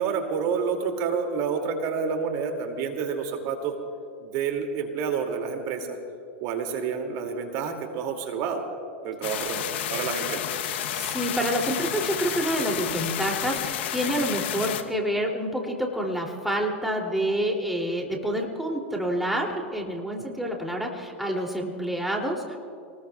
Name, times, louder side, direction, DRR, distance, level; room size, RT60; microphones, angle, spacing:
voice 1, 0.0-3.7 4.2-6.0 6.4-8.6 9.0-10.4, right 6 dB, 50° right, 4 dB, 2.5 m, -29 dB
sound 1, 9.2-14.8, left 11 dB, 65° left, 1.0 m, -30 dB
voice 2, 10.9-22.6, right 1 dB, ahead, 0 dB, 2.8 m, -28 dB
27.5 x 20.0 x 2.4 m, 2.4 s
hypercardioid pair, 105°, 6 cm